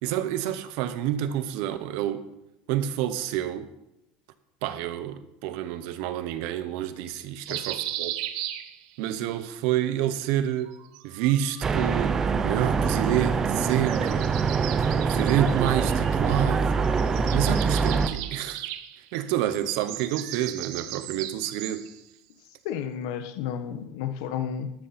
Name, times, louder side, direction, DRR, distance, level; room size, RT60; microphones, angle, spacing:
voice 1, 0.0-2.3 2.7-3.7 4.6-8.2 9.0-10.7 11.0-14.3 14.9-16.6 17.3-18.6 19.1-21.9, right 11 dB, 60° right, 1.0 m, -28 dB
sound 1, 7.5-9.2 10.6-11.7 13.6-16.6 16.8-22.0, right 13 dB, 80° right, 0.9 m, -37 dB
sound 2, 11.6-18.1, right 5 dB, 15° right, 0.5 m, -24 dB
voice 2, 22.6-24.7, left 8 dB, 70° left, 1.2 m, -32 dB
13.0 x 12.5 x 4.3 m
cardioid pair, 180°, 3 cm